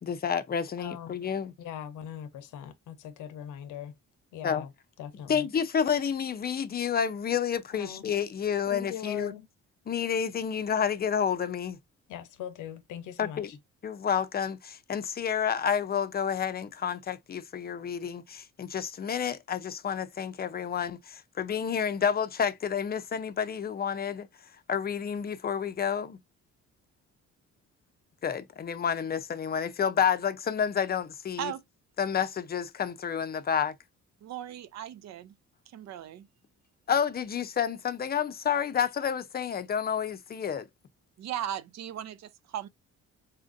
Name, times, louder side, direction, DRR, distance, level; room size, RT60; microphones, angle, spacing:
voice 1, 0.0-1.5 4.4-4.7 5.3-9.3 9.9-11.8 13.2-13.5 13.8-24.3 24.7-26.2 28.2-31.5 32.0-33.7 36.9-40.7, left 7 dB, 30° left, 0.5 m, -29 dB
voice 2, 0.8-1.2 1.6-4.0 4.3-4.7 5.0-5.5 7.7-8.1 8.7-9.5 12.1-13.6, left 10 dB, 85° left, 0.7 m, -40 dB
voice 3, 34.2-35.3 35.7-36.3 41.2-42.7, right 10 dB, 60° right, 0.5 m, -37 dB
4.2 x 2.5 x 2.5 m
cardioid pair, 90°, 30 cm